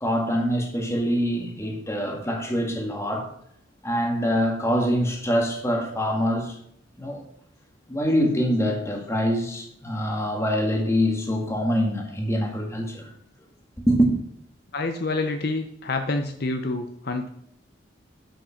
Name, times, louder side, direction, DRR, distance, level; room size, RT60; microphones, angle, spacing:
voice 1, 0.0-3.3 3.8-6.6 7.0-7.2 7.9-13.1 13.9-14.1, equal, 15° left, 1.8 m, -24 dB
voice 2, 14.7-17.3, left 2 dB, 55° left, 0.8 m, -27 dB
10.5 x 5.4 x 5.8 m
head